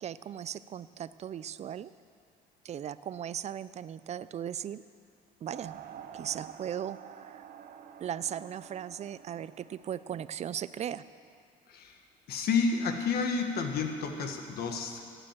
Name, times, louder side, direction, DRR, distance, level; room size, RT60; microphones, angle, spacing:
voice 1, 0.0-1.9 2.6-4.8 5.4-5.8 6.1-7.4 8.0-11.0, right 9 dB, 40° right, 16 dB, 0.5 m, -37 dB
sound 1, 5.5-11.4, right 9 dB, 60° right, 0.8 m, -49 dB
voice 2, 11.7-12.0 12.3-15.0, left 5 dB, 65° left, 4 dB, 1.8 m, -30 dB
16.5 x 9.1 x 7.4 m, 2.3 s
cardioid pair, 110°, 17 cm